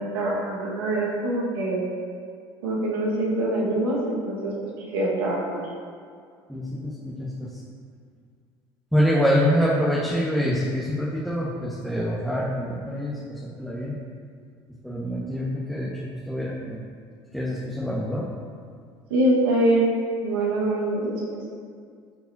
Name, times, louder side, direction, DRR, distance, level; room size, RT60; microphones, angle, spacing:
voice 1, 0.0-1.8 2.6-5.6 19.1-19.9 20.2-21.4, right 1 dB, 90° right, -4 dB, 1.6 m, -24 dB
voice 2, 6.5-6.9 7.2-7.5 8.9-13.2 13.6-13.9 14.8-16.8 17.3-18.3, equal, ahead, -7 dB, 1.4 m, -25 dB
13.0 x 4.6 x 2.8 m, 2.1 s
supercardioid pair, 75°, 12 cm